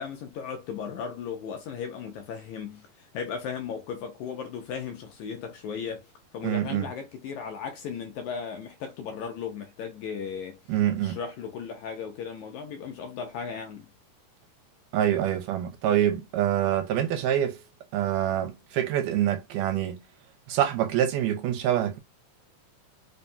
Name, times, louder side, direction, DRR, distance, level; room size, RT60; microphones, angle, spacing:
voice 1, 0.0-6.1 6.3-10.6 11.0-13.9, left 6 dB, 75° left, 1.8 m, -36 dB
voice 2, 6.4-6.9 10.7-11.2 14.9-17.6 17.9-20.0 20.5-22.0, right 11 dB, 85° right, 2.3 m, -25 dB
5.1 x 2.2 x 2.6 m
omnidirectional pair, 3.8 m